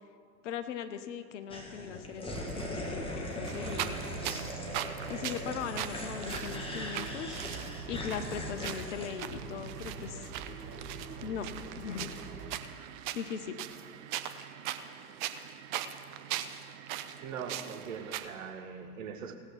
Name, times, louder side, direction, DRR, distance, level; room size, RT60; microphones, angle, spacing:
voice 1, 0.4-4.0 5.1-7.4 7.9-10.3 11.2-11.5 11.8-12.1 13.1-13.6, left 8 dB, 50° left, 0.9 m, -39 dB
sound 1, 1.5-9.1, left 1 dB, 10° left, 1.7 m, -40 dB
sound 2, 2.3-12.6, right 4 dB, 80° right, 1.3 m, -45 dB
sound 3, 3.5-18.3, right 11 dB, 30° right, 0.6 m, -40 dB
voice 2, 17.2-19.4, right 6 dB, 55° right, 1.3 m, -41 dB
17.0 x 8.0 x 5.9 m
figure-of-eight pair, 95°, 48 cm